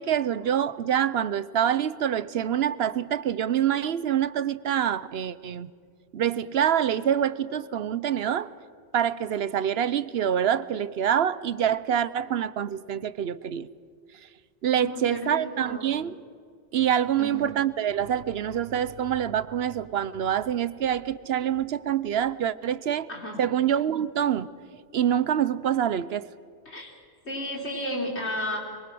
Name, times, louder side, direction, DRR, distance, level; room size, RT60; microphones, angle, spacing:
voice 1, 0.0-5.7 6.1-8.5 8.9-13.7 14.6-16.1 16.7-23.1 23.4-24.5 24.9-26.3, right 9 dB, 70° right, 17 dB, 1.0 m, -26 dB
voice 2, 14.7-15.9 17.2-17.5 23.1-23.4 26.7-26.9 27.2-28.6, left 1 dB, 90° left, 0 dB, 4.4 m, -33 dB
23.5 x 23.5 x 6.2 m, 2.1 s
omnidirectional pair, 1.1 m